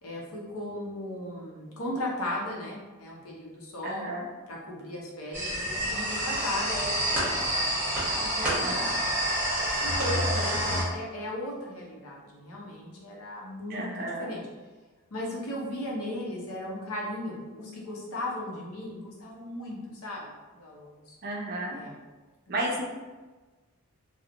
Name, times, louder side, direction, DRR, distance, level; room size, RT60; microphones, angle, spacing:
voice 1, 0.0-4.1 4.5-7.8 8.2-9.1 9.8-14.4 15.1-21.2 21.7-22.0 22.5-22.6, left 1 dB, 85° left, -3 dB, 0.6 m, -37 dB
voice 2, 3.8-4.2 8.4-8.9 13.7-14.3 21.2-21.8 22.5-22.8, right 1 dB, 45° right, -1 dB, 0.4 m, -33 dB
sound 1, 5.3-10.8, equal, 10° right, 0.8 m, -28 dB
2.8 x 2.0 x 2.4 m, 1.3 s
head